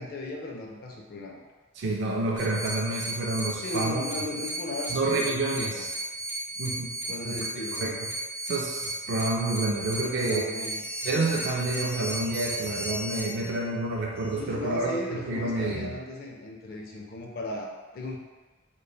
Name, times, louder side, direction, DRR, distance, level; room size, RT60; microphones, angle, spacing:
voice 1, 0.0-1.4 3.6-5.9 7.0-8.0 10.0-10.8 14.4-18.2, left 1 dB, 50° left, -1 dB, 0.4 m, -36 dB
voice 2, 1.8-4.0 4.9-5.9 6.6-6.9 7.2-7.5 7.8-7.9 8.4-10.4 11.0-14.9 15.3-15.9, right 2 dB, 60° right, -1 dB, 0.3 m, -29 dB
sound 1, 2.4-13.2, right 2 dB, 10° left, 0.9 m, -35 dB
Bell, 10.7-14.6, left 3 dB, 10° right, 1.1 m, -42 dB
3.1 x 2.1 x 2.2 m, 1.3 s
head